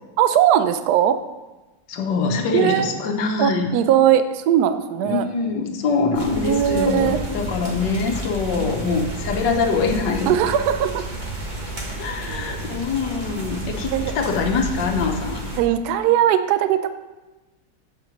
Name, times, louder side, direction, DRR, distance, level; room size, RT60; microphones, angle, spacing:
voice 1, 0.2-1.2 2.5-2.9 3.4-5.3 6.5-7.2 8.6-8.7 10.3-11.0 12.3-12.4 13.9-14.1 15.6-16.9, right 10 dB, 70° right, 10 dB, 1.1 m, -19 dB
voice 2, 1.9-3.7 5.0-10.3 12.0-15.4, left 4 dB, 85° left, 4 dB, 1.6 m, -24 dB
sound 1, 6.1-15.6, right 2 dB, 30° right, 1.4 m, -31 dB
8.3 x 7.5 x 5.2 m, 1.1 s
omnidirectional pair, 1.9 m